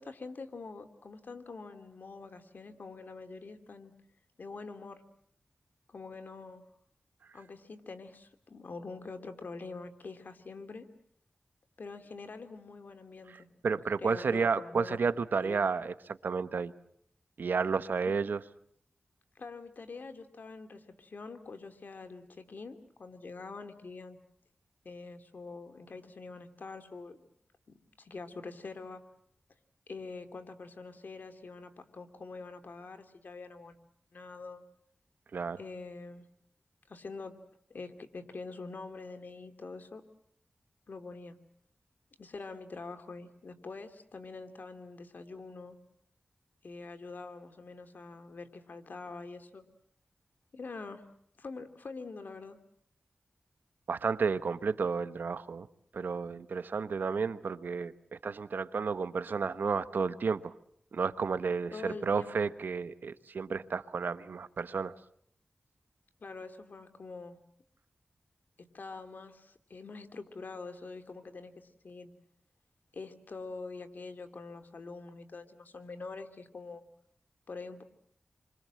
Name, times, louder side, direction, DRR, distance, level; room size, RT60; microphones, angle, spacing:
voice 1, 0.0-3.9 4.4-5.0 5.9-6.6 7.3-10.9 11.8-13.5 14.0-15.0 15.4-15.6 18.0-18.1 19.3-24.2 24.8-27.3 27.7-29.0 29.9-33.8 34.1-34.6 35.6-36.3 36.9-37.4 37.7-40.0 40.9-41.4 42.2-45.8 46.6-49.6 50.5-51.0 51.4-52.6 61.7-62.5 66.2-67.4 68.7-72.1 72.9-76.8 77.5-77.8, left 3 dB, 70° left, 7 dB, 2.7 m, -45 dB
voice 2, 13.6-16.7 17.4-18.4 35.3-35.6 53.9-55.7 55.9-57.9 58.2-60.5 60.9-64.9, right 5 dB, 80° right, 13 dB, 1.1 m, -31 dB
28.0 x 24.5 x 7.6 m, 0.68 s
cardioid pair, 50°, 3 cm